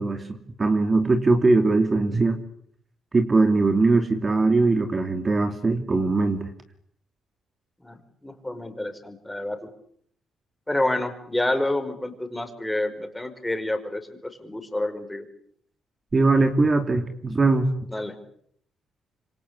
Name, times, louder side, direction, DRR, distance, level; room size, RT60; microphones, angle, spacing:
voice 1, 0.0-2.4 3.1-6.5 16.1-17.7, right 3 dB, 30° right, 7 dB, 2.8 m, -21 dB
voice 2, 7.8-9.7 10.7-15.3 17.9-18.2, left 1 dB, 10° left, 7 dB, 5.2 m, -29 dB
27.0 x 25.5 x 8.3 m, 0.66 s
cardioid pair, 90°, 0 cm